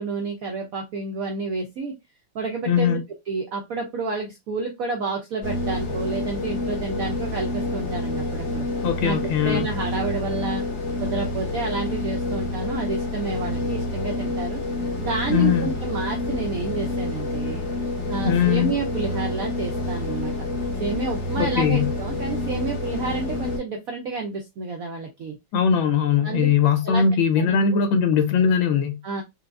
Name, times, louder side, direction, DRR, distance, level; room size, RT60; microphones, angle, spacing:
voice 1, 0.0-1.9 2.3-3.0 3.3-8.7 9.0-9.2 9.4-10.6 11.0-14.6 15.0-17.6 18.1-20.3 20.8-25.4 26.2-26.5 26.8-27.0 27.4-27.6 29.0-29.2, right 4 dB, 80° right, 0.7 m, -30 dB
voice 2, 2.7-3.0 8.8-9.7 15.3-15.7 18.2-18.7 21.4-21.9 25.5-29.0, left 7 dB, 85° left, 1.5 m, -20 dB
sound 1, 5.4-23.6, left 2 dB, 45° left, 1.6 m, -28 dB
4.5 x 2.2 x 2.4 m
omnidirectional pair, 2.1 m